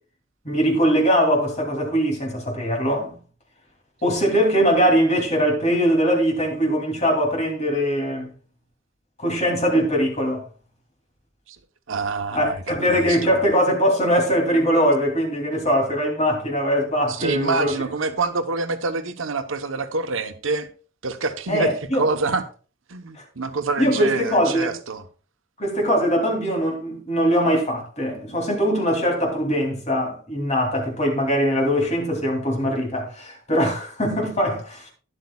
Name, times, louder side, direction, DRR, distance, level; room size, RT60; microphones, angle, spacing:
voice 1, 0.4-3.1 4.0-8.3 9.2-10.4 12.3-17.7 21.5-22.0 23.8-24.7 25.6-34.8, equal, 35° left, 2.8 m, -21 dB
voice 2, 11.9-13.4 17.1-20.7 21.0-22.4 22.9-25.0, right 3 dB, 80° right, 1.0 m, -26 dB
12.0 x 10.5 x 2.3 m
head